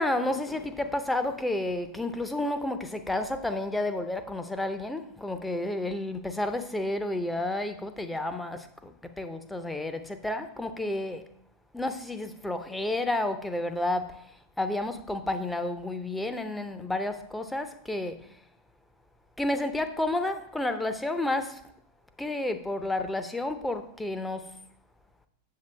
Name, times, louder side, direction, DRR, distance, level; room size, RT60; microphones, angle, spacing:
voice 1, 0.0-11.3 11.7-14.3 14.6-18.4 19.4-21.6 22.2-24.6, left 1 dB, 5° left, 0.7 m, -31 dB
7.6 x 7.3 x 3.3 m
figure-of-eight pair, 90°, 0 cm